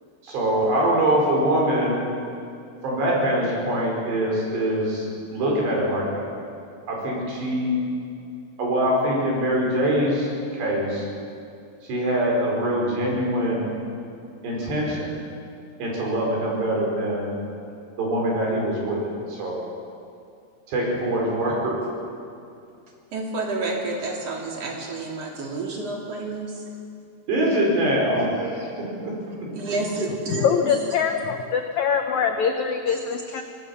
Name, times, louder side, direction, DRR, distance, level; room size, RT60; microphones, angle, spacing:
voice 1, 0.2-2.0 2.8-6.2 6.9-7.8 8.6-11.1 11.9-13.7 14.4-15.2 15.8-17.3 18.0-19.0 19.3-19.7 20.7-21.7 27.3-29.5, right 1 dB, 85° right, -2 dB, 7.1 m, -24 dB
voice 2, 23.1-26.6 29.5-30.7, right 3 dB, 40° right, -1 dB, 3.9 m, -29 dB
voice 3, 30.3-33.4, left 7 dB, 85° left, 5 dB, 1.6 m, -23 dB
24.5 x 18.0 x 7.2 m, 2.5 s
omnidirectional pair, 4.8 m